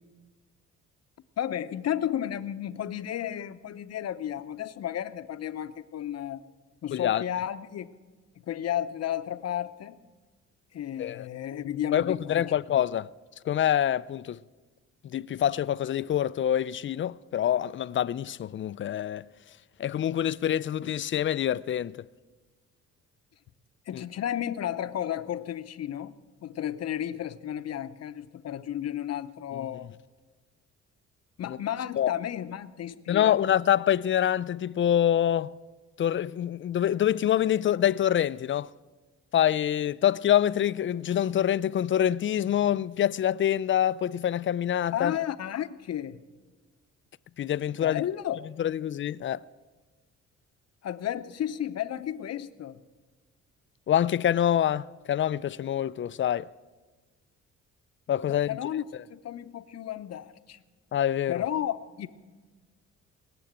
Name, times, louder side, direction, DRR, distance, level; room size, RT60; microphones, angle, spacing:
voice 1, 1.4-6.4 6.8-7.9 8.5-10.0 10.7-12.8 23.9-26.1 26.4-29.9 31.4-33.4 44.9-46.2 47.8-48.4 50.8-52.8 58.3-60.6 61.3-62.1, left 11 dB, 55° left, 0.8 m, -33 dB
voice 2, 6.9-7.2 11.0-11.3 11.9-13.1 13.5-14.4 15.0-19.2 19.8-22.1 23.9-24.0 29.5-29.6 31.5-31.6 32.0-32.1 33.1-35.5 36.0-38.7 39.3-45.2 47.4-48.0 48.6-49.4 53.9-56.5 58.1-58.5 60.9-61.4, left 10 dB, 40° left, 0.4 m, -26 dB
20.5 x 7.0 x 8.8 m
cardioid pair, 90°, 30 cm